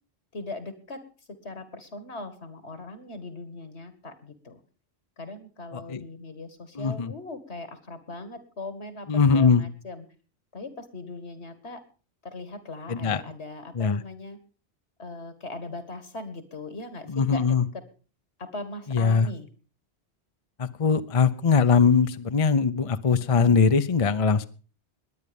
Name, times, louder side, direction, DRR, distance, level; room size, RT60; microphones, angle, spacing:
voice 1, 0.3-1.0 1.4-4.6 5.2-10.0 10.5-11.8 12.2-14.4 15.0-17.6 18.4-19.5, left 2 dB, 75° left, 11 dB, 2.4 m, -39 dB
voice 2, 5.7-6.0 6.7-7.1 9.1-9.7 12.9-13.2 13.7-14.0 17.1-17.7 18.9-19.3 20.6-24.5, left 5 dB, 35° left, 11 dB, 0.7 m, -21 dB
20.5 x 9.8 x 5.4 m, 0.38 s
omnidirectional pair, 1.1 m